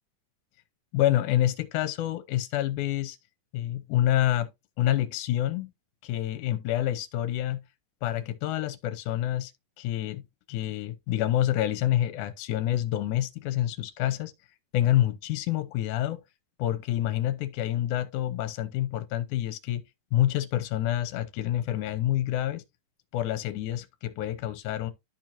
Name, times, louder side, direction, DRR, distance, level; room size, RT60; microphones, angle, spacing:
voice 1, 0.9-3.2 3.5-4.5 4.8-5.7 6.0-7.6 8.0-9.5 9.8-10.2 10.5-14.3 14.7-16.2 16.6-19.8 20.1-22.6 23.1-24.9, left 13 dB, 75° left, 2.2 m, -27 dB
12.5 x 4.4 x 2.6 m
omnidirectional pair, 3.8 m